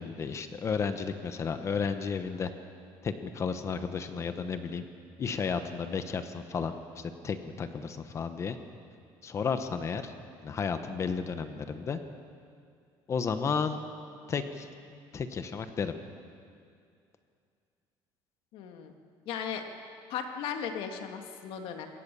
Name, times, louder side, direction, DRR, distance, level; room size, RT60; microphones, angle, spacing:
voice 1, 0.0-2.5 3.0-4.9 5.2-8.6 9.2-10.1 10.4-12.0 13.1-13.8 14.3-15.9, left 5 dB, 30° left, 9 dB, 1.1 m, -33 dB
voice 2, 18.5-18.9 19.3-19.6 20.1-21.9, left 7 dB, 70° left, 5 dB, 2.1 m, -36 dB
23.5 x 18.5 x 6.9 m, 2.3 s
cardioid pair, 150°, 10 cm